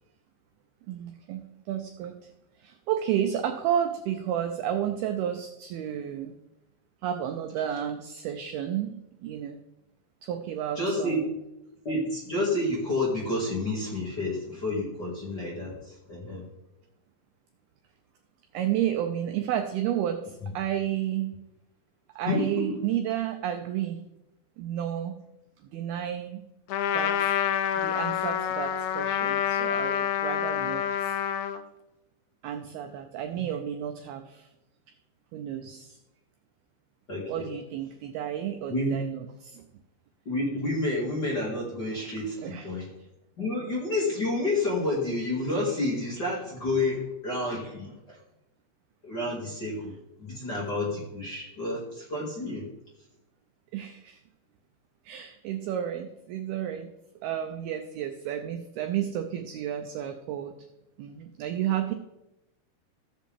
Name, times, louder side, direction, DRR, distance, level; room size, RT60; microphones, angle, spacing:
voice 1, 0.9-2.3 2.6-6.3 7.0-8.9 9.2-9.6 10.2-11.2 18.5-21.4 22.2-24.0 24.6-25.2 25.6-26.4 26.9-27.3 27.8-31.1 32.4-34.5 35.3-36.0 37.3-39.6 42.4-42.7 53.7-54.2 55.1-56.9 57.2-60.6 61.0-61.9, right 10 dB, 85° right, 6 dB, 2.2 m, -31 dB
voice 2, 10.7-11.3 11.8-16.5 20.4-20.5 22.3-22.8 33.4-33.5 37.1-37.5 38.7-39.0 40.2-42.9 43.4-48.2 49.0-52.7, left 2 dB, 30° left, -5 dB, 2.0 m, -30 dB
Trumpet, 26.7-31.6, left 9 dB, 85° left, 2.4 m, -27 dB
14.5 x 7.6 x 3.5 m, 0.93 s
omnidirectional pair, 5.2 m